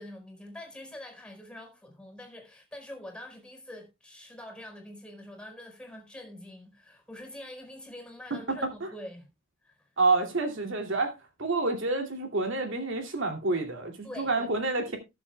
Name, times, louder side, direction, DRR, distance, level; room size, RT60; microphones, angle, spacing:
voice 1, 0.0-9.3 9.6-9.9 14.0-14.5, left 1 dB, 5° left, 4.4 m, -45 dB
voice 2, 10.0-15.0, right 3 dB, 65° right, 2.6 m, -28 dB
19.5 x 7.3 x 2.2 m
head